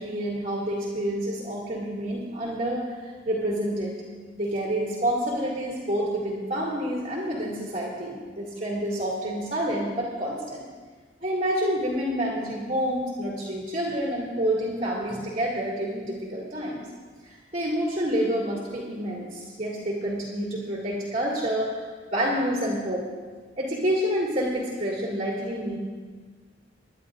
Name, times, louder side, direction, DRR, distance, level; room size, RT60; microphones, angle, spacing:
voice 1, 0.0-3.9 4.4-10.6 11.2-16.9 17.2-23.0 23.6-25.8, equal, 35° right, -5 dB, 2.3 m, -28 dB
26.0 x 11.0 x 2.5 m, 1.5 s
head